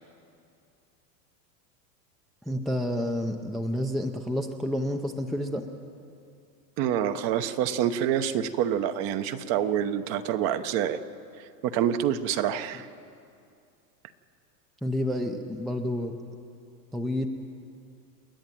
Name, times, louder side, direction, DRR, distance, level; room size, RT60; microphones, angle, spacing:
voice 1, 2.5-5.7 14.8-16.2 16.9-17.3, left 1 dB, ahead, 5 dB, 0.5 m, -29 dB
voice 2, 6.8-11.0 11.6-12.9, right 9 dB, 45° right, 10 dB, 1.1 m, -27 dB
28.5 x 10.5 x 9.2 m, 2.4 s
supercardioid pair, 140°, 50 cm